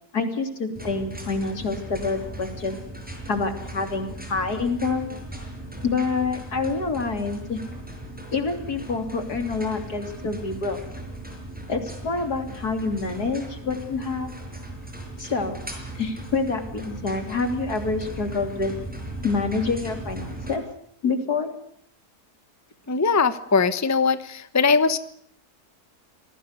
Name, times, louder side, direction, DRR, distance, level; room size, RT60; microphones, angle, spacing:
voice 1, 0.1-2.8 3.3-5.1 5.8-7.6 8.3-10.8 11.7-14.3 15.2-15.6 15.9-18.8 19.2-20.6 21.0-21.5, left 4 dB, 75° left, 7 dB, 3.8 m, -27 dB
sound 1, 0.7-20.5, right 1 dB, 5° right, 6.4 m, -38 dB
voice 2, 22.9-25.0, left 4 dB, 10° left, 13 dB, 1.0 m, -21 dB
27.0 x 18.5 x 8.2 m, 0.69 s
omnidirectional pair, 1.7 m